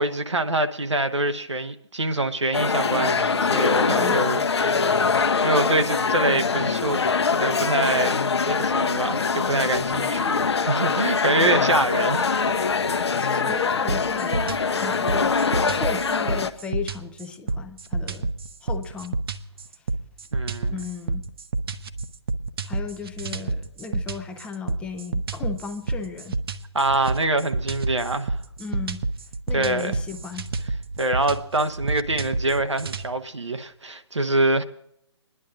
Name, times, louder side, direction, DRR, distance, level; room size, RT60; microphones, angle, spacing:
voice 1, 0.0-5.0 5.4-7.0 7.3-12.7 20.3-20.8 26.7-28.4 29.5-30.0 31.0-34.6, right 2 dB, 85° right, 1.1 m, -25 dB
sound 1, 2.5-16.5, left 5 dB, 65° left, 0.8 m, -23 dB
voice 2, 3.9-4.2 12.0-12.1 13.2-14.5 14.8-18.3 18.6-19.2 20.7-21.3 22.6-26.4 28.6-29.0 29.5-30.5, left 6 dB, 5° left, 0.5 m, -35 dB
sound 2, 13.9-33.1, right 3 dB, 55° right, 0.8 m, -29 dB
27.0 x 11.0 x 2.5 m
figure-of-eight pair, 135°, 15 cm